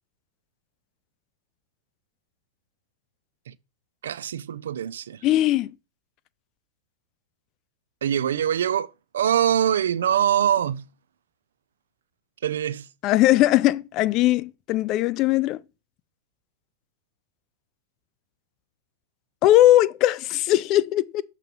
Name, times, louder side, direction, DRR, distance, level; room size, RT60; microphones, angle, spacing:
voice 1, 4.0-5.2 8.0-8.9 9.1-10.9 12.4-12.9, right 9 dB, 85° right, 0.4 m, -23 dB
voice 2, 5.2-5.7 13.0-15.6 19.4-21.2, left 14 dB, 45° left, 0.4 m, -19 dB
6.8 x 3.0 x 5.3 m
hypercardioid pair, 120°, 0 cm